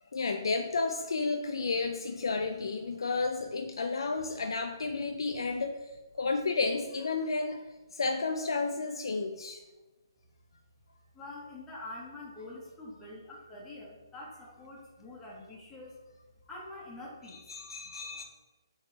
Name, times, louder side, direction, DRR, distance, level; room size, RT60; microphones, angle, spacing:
voice 1, 0.1-5.9 6.2-7.7 7.9-9.6 17.5-18.2, left 3 dB, 70° left, 5 dB, 0.4 m, -32 dB
voice 2, 11.2-13.2 13.5-14.3 14.6-15.9 16.5-17.3, left 2 dB, 10° left, -6 dB, 1.0 m, -45 dB
5.1 x 2.9 x 3.3 m, 1.1 s
figure-of-eight pair, 140°, 3 cm